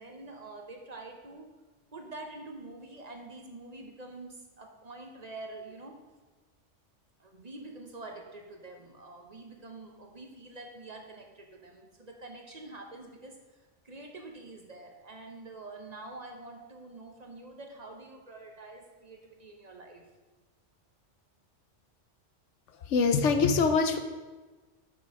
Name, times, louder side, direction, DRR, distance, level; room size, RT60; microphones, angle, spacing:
voice 1, 0.0-1.5 1.9-6.0 7.2-20.0, right 2 dB, 40° right, 2 dB, 0.9 m, -46 dB
voice 2, 22.7-24.0, left 4 dB, 90° left, 8 dB, 1.1 m, -24 dB
6.6 x 6.2 x 4.7 m, 1.3 s
omnidirectional pair, 1.2 m